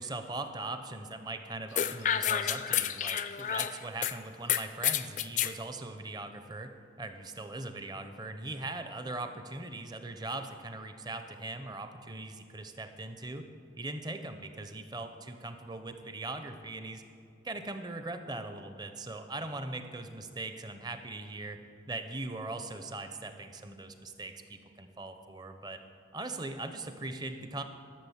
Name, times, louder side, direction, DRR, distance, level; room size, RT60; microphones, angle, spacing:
voice 1, 0.0-13.5 13.8-17.0 17.4-21.6 21.9-25.8 26.1-27.6, right 2 dB, 20° right, 8 dB, 0.6 m, -40 dB
sound 1, 1.8-4.1 4.5-5.5, left 10 dB, 40° left, 0.3 m, -29 dB
11.5 x 6.9 x 7.1 m, 2.5 s
head